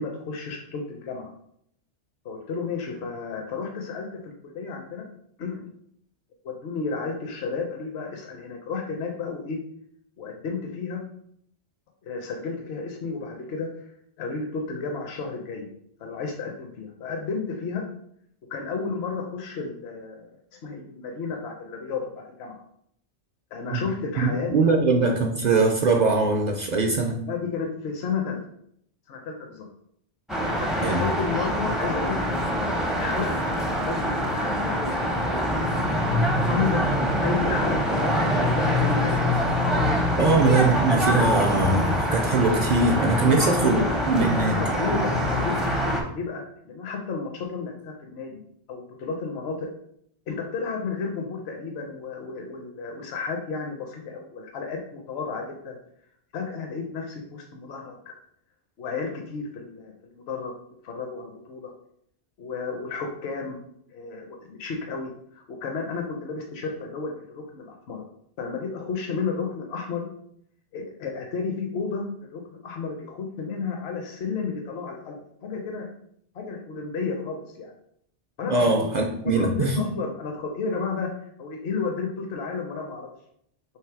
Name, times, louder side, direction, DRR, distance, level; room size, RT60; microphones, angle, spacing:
voice 1, 0.0-1.3 2.2-5.0 5.4-5.7 6.4-9.6 10.2-11.0 12.0-13.9 14.2-15.7 16.0-17.9 18.5-22.6 23.5-24.8 27.3-28.4 29.1-29.7 30.6-35.1 36.5-39.5 40.2-40.4 43.2-43.8 44.5-48.4 48.7-49.7 50.3-55.8 56.3-58.1 58.8-60.5 60.8-61.7 62.4-63.6 63.9-68.0 68.4-70.1 70.7-75.9 76.3-77.7 78.4-78.9 79.3-81.1 81.4-83.1, left 4 dB, 70° left, 2 dB, 0.9 m, -32 dB
voice 2, 24.2-27.2 30.8-31.0 40.2-43.8 44.1-44.6 78.5-79.8, right 3 dB, 55° right, 2 dB, 0.5 m, -22 dB
sound 1, 30.3-46.0, equal, ahead, 0.4 m, -24 dB
3.3 x 3.0 x 4.5 m, 0.70 s
omnidirectional pair, 1.1 m